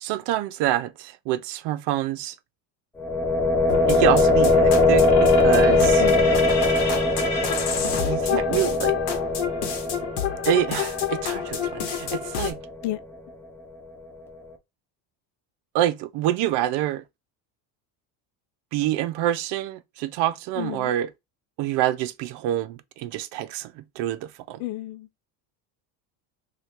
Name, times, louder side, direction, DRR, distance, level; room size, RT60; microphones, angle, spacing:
voice 1, 0.0-2.3 3.9-6.0 8.0-8.9 10.5-12.6 15.7-17.0 18.7-21.1 21.6-24.6, right 12 dB, 60° right, 0.6 m, -26 dB
sound 1, 3.0-12.8, left 2 dB, 5° left, 0.4 m, -21 dB
sound 2, 3.7-12.5, left 7 dB, 55° left, 1.0 m, -29 dB
voice 2, 6.0-6.5 12.8-13.0 20.6-20.9 24.6-25.1, left 15 dB, 85° left, 0.6 m, -32 dB
3.1 x 2.4 x 4.3 m
cardioid pair, 130°, 48 cm